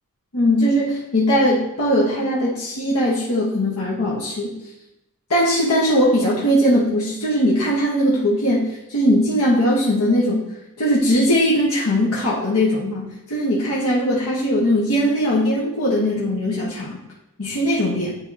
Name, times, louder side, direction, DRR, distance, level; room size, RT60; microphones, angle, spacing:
voice 1, 0.3-4.5 5.3-10.5 10.8-17.0 17.4-18.2, equal, 85° left, -6 dB, 1.3 m, -20 dB
10.5 x 3.6 x 2.8 m, 0.93 s
head